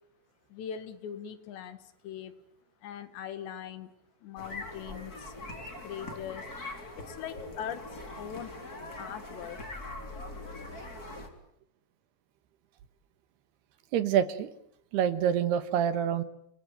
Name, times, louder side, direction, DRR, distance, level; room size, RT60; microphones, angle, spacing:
voice 1, 0.5-2.3 2.8-4.0 4.2-5.3 5.8-6.5 7.0-8.6 9.0-9.6, left 9 dB, 85° left, 10 dB, 3.9 m, -41 dB
sound 1, 4.4-11.3, left 2 dB, 20° left, 4.1 m, -42 dB
voice 2, 13.9-14.5 14.9-16.2, right 9 dB, 75° right, 12 dB, 3.3 m, -26 dB
29.0 x 20.5 x 9.1 m, 0.72 s
omnidirectional pair, 4.9 m